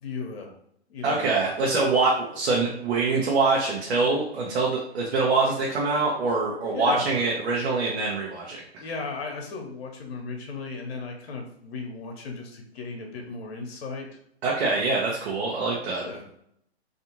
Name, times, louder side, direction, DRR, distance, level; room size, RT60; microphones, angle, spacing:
voice 1, 0.0-0.5 0.9-1.3 6.7-7.2 8.8-14.1 15.9-16.2, left 4 dB, 65° left, 2 dB, 0.8 m, -35 dB
voice 2, 1.0-8.8 14.4-16.0, right 3 dB, 65° right, -3 dB, 0.8 m, -24 dB
2.5 x 2.3 x 2.9 m, 0.72 s
hypercardioid pair, 135°, 33 cm